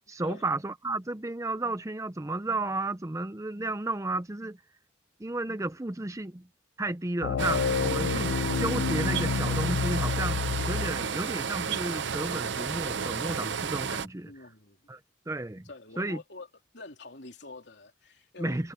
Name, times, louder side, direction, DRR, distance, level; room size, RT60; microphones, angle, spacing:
voice 1, 0.1-4.6 5.2-6.5 6.8-14.3 14.9-15.0 15.3-15.7 16.0-16.2 18.4-18.7, right 2 dB, 15° right, 0.5 m, -33 dB
sound 1, 7.2-11.1, left 6 dB, 75° left, 0.4 m, -29 dB
sound 2, 7.4-14.1, right 6 dB, 60° right, 0.6 m, -32 dB
voice 2, 14.2-14.9 15.6-16.5 16.7-18.7, left 3 dB, 55° left, 3.4 m, -46 dB
head